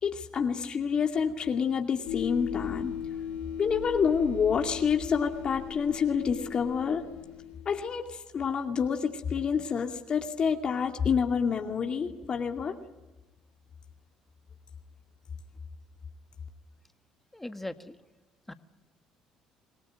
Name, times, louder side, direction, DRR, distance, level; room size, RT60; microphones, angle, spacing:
voice 1, 0.0-2.9 3.6-7.0 7.7-12.7, left 6 dB, 45° left, 3 dB, 2.4 m, -28 dB
sound 1, 2.1-7.9, left 9 dB, 80° left, 4.2 m, -37 dB
voice 2, 17.3-18.0 18.5-18.6, left 1 dB, 10° left, 9 dB, 1.7 m, -39 dB
25.5 x 18.5 x 9.4 m, 1.2 s
supercardioid pair, 70°, 2 cm